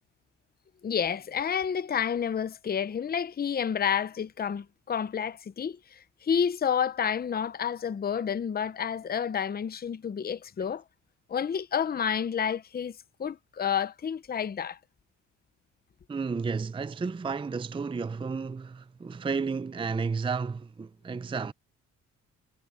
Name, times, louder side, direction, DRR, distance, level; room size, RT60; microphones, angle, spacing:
voice 1, 0.8-10.8 11.3-14.8, left 7 dB, 30° left, 0.8 m, -30 dB
voice 2, 16.1-21.5, right 5 dB, 15° right, 0.5 m, -32 dB
cardioid pair, 90°, 30 cm